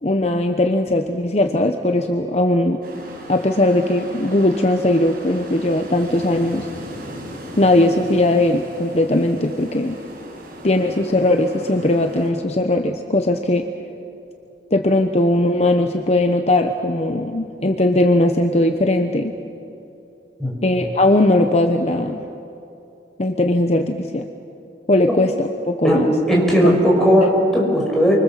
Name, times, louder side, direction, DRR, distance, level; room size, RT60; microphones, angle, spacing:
voice 1, 0.0-2.8 3.3-6.7 7.6-10.0 10.6-13.6 14.7-19.3 20.6-22.2 23.2-24.3 24.9-26.1, left 1 dB, 35° left, 5 dB, 1.0 m, -19 dB
sound 1, 2.8-12.3, equal, 55° right, 5.8 m, -37 dB
voice 2, 25.8-28.1, equal, 5° left, -2 dB, 6.1 m, -16 dB
29.0 x 24.5 x 7.6 m, 2.7 s
head